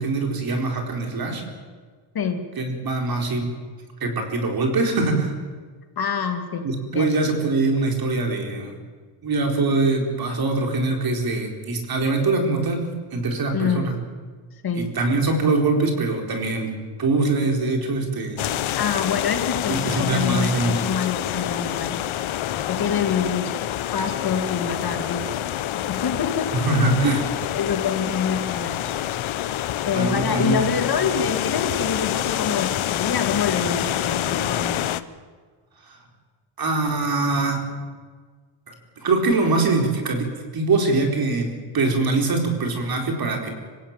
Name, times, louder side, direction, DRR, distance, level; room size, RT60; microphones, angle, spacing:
voice 1, 0.0-1.4 2.6-3.5 4.0-5.3 6.6-8.7 9.2-14.0 14.7-18.6 19.7-20.8 26.5-27.3 29.9-30.6 35.9-36.0 36.6-37.7 38.7-43.5, right 3 dB, 45° right, 3 dB, 4.2 m, -23 dB
voice 2, 2.1-2.5 6.0-6.7 6.9-7.1 13.5-13.9 14.6-14.9 18.7-22.2 22.5-23.5 23.9-25.5 25.7-26.5 27.5-28.8 29.9-35.1, left 6 dB, 45° left, 7 dB, 2.2 m, -26 dB
sound 1, 18.4-35.0, left 12 dB, 75° left, 1.0 m, -27 dB
26.5 x 16.5 x 9.0 m, 1.5 s
wide cardioid pair, 160°, 49 cm